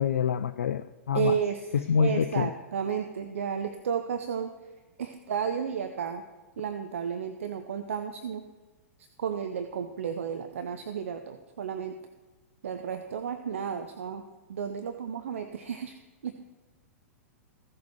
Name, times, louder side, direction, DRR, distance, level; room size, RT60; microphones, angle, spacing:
voice 1, 0.0-1.3 1.7-2.5, left 7 dB, 65° left, 0.3 m, -26 dB
voice 2, 1.1-4.5 5.0-6.2 6.6-8.4 9.0-12.0 12.6-14.2 14.5-15.9 16.2-16.4, right 7 dB, 65° right, 0.6 m, -32 dB
15.0 x 7.1 x 3.2 m
figure-of-eight pair, 100°, 8 cm